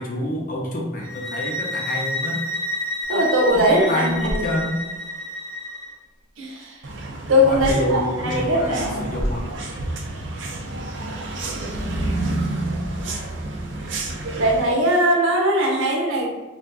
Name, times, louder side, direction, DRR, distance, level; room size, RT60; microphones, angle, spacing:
voice 1, 0.0-2.4 3.5-4.8 7.4-9.5, left 1 dB, 40° left, 0 dB, 0.6 m, -27 dB
sound 1, 1.0-5.9, left 2 dB, 20° right, 0.6 m, -29 dB
sound 2, 3.0-3.1 3.5-5.0 7.5-8.0 8.8-10.0, equal, 80° left, 1.0 m, -31 dB
voice 2, 3.1-4.5 6.4-6.8 7.3-9.1 14.4-16.3, equal, 85° right, -1 dB, 0.8 m, -20 dB
sound 3, 6.8-14.6, right 2 dB, 60° right, 0.5 m, -29 dB
4.3 x 2.5 x 2.3 m, 1.2 s
head